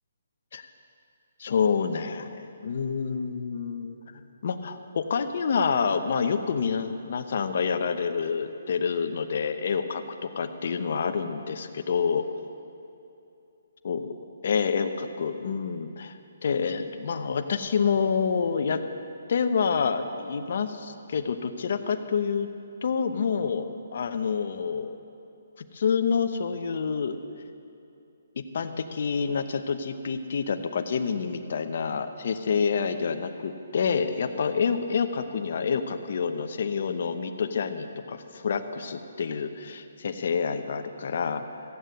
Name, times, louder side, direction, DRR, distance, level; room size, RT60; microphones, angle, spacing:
voice 1, 1.4-12.3 13.8-14.1 14.4-16.2 16.4-18.8 19.3-22.5 22.8-23.6 23.9-24.9 25.6-27.2 28.4-41.6, left 6 dB, 55° left, 7 dB, 0.8 m, -28 dB
15.5 x 8.3 x 7.7 m, 2.7 s
hypercardioid pair, 165°, 0 cm